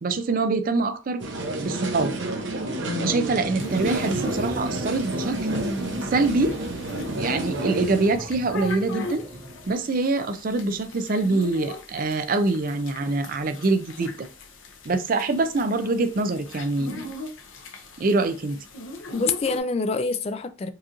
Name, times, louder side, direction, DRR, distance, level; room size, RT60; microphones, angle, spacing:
voice 1, 0.0-1.2 1.6-2.1 3.0-5.4 6.0-6.6 7.2-9.2 9.7-14.3 14.9-17.0 18.0-18.6, right 3 dB, 45° right, 0.4 m, -24 dB
sound 1, 1.2-8.2, right 1 dB, 65° right, 0.8 m, -29 dB
voice 2, 2.9-3.2 19.1-20.7, left 4 dB, 30° left, 0.3 m, -26 dB
sound 2, 3.3-9.7, right 1 dB, 85° right, 1.4 m, -42 dB
sound 3, 3.6-19.6, left 2 dB, 80° left, 0.8 m, -40 dB
4.6 x 2.5 x 2.9 m
head